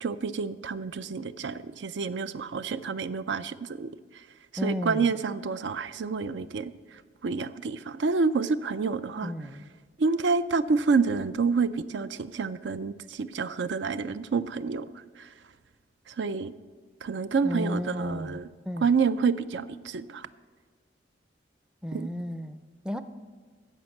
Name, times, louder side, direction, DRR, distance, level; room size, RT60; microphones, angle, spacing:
voice 1, 0.0-3.9 4.6-6.7 7.2-9.3 10.0-14.9 15.2-15.3 16.1-16.5 17.0-18.5 18.8-20.3 21.9-22.1, right 4 dB, 70° right, 14 dB, 0.4 m, -28 dB
voice 2, 4.6-5.1 9.2-9.7 17.4-18.4 18.6-18.9 21.8-23.0, left 1 dB, 5° right, 11 dB, 0.4 m, -33 dB
15.0 x 5.2 x 7.7 m, 1.5 s
head